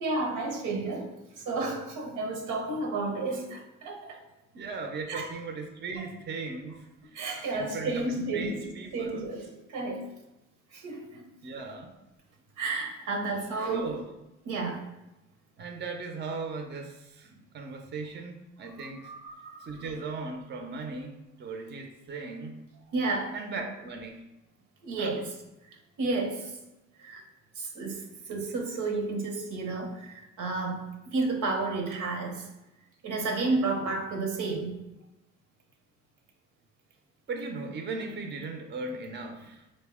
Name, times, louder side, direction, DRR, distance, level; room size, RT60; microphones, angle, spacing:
voice 1, 0.0-4.2 5.1-5.3 7.1-10.1 10.7-11.3 12.6-13.9 14.5-14.9 18.8-19.8 22.9-23.4 24.8-25.3 26.0-26.6 27.0-27.2 27.6-32.5 33.0-34.8, right 3 dB, 85° right, 2 dB, 0.8 m, -32 dB
voice 2, 4.5-7.2 7.5-9.2 11.4-11.9 13.7-14.1 15.6-19.1 19.6-22.6 23.3-24.3 25.0-25.2 37.3-39.6, right 4 dB, 35° right, 4 dB, 0.5 m, -37 dB
4.0 x 2.1 x 3.4 m, 0.94 s
cardioid pair, 90°, 30 cm